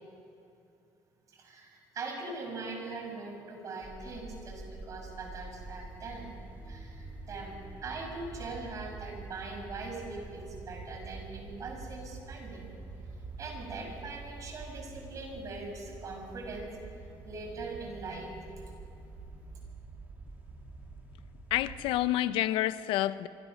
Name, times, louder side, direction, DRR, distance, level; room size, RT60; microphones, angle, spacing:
voice 1, 1.4-6.3 6.7-12.7 13.4-16.7 17.2-18.3, right 3 dB, 40° right, 2 dB, 5.9 m, -41 dB
sound 1, 3.8-22.0, right 3 dB, 20° right, 2.6 m, -46 dB
voice 2, 21.5-23.3, left 14 dB, 90° left, 14 dB, 0.7 m, -28 dB
26.5 x 24.0 x 6.5 m, 2.6 s
cardioid pair, 150°, 9 cm